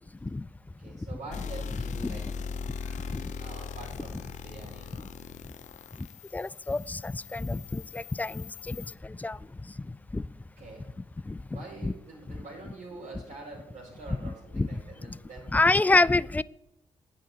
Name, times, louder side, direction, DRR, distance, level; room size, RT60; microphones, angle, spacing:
voice 1, 0.8-2.5 3.1-5.5 10.6-11.0 11.5-15.6, right 3 dB, 60° right, -6 dB, 3.4 m, -46 dB
sound 1, 1.3-8.9, left 5 dB, 65° left, 0.6 m, -39 dB
voice 2, 6.3-9.4 10.1-10.2 11.3-11.4 11.8-11.9 14.2-14.7 15.5-16.4, left 2 dB, 10° left, 19 dB, 0.3 m, -27 dB
8.8 x 5.1 x 7.8 m, 0.82 s
supercardioid pair, 65°, 14 cm